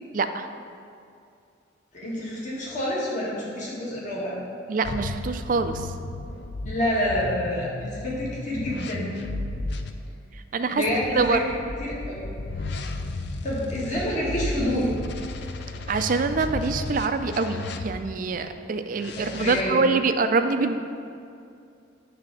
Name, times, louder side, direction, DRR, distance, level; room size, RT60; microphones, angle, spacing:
voice 1, 0.1-0.5 4.7-5.9 10.3-10.8 11.2-11.4 15.9-20.8, right 4 dB, 45° right, 8 dB, 0.4 m, -25 dB
voice 2, 1.9-4.4 6.6-9.2 10.7-11.4 11.8-12.3 13.4-14.9 19.2-19.9, left 1 dB, 40° left, -6 dB, 1.8 m, -28 dB
sound 1, 4.8-9.9 10.9-18.2 18.9-19.6, left 2 dB, 60° left, 0.5 m, -34 dB
9.0 x 3.4 x 6.9 m, 2.4 s
head